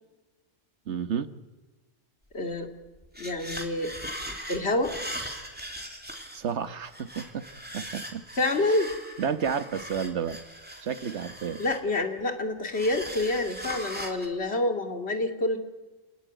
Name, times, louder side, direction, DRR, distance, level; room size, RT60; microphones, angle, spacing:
voice 1, 0.9-1.3 6.2-7.5 7.7-8.3 8.6-8.8 9.2-10.4 10.8-11.6, right 7 dB, 80° right, 12 dB, 1.5 m, -31 dB
voice 2, 2.3-2.7 3.2-3.9 4.5-5.0 8.3-8.9 11.6-15.6, left 2 dB, 65° left, 5 dB, 2.7 m, -27 dB
sound 1, 2.5-2.6 2.9-6.5 6.9-12.2 12.7-14.3, equal, 10° right, 2.9 m, -39 dB
28.5 x 19.5 x 9.2 m, 1.2 s
omnidirectional pair, 1.2 m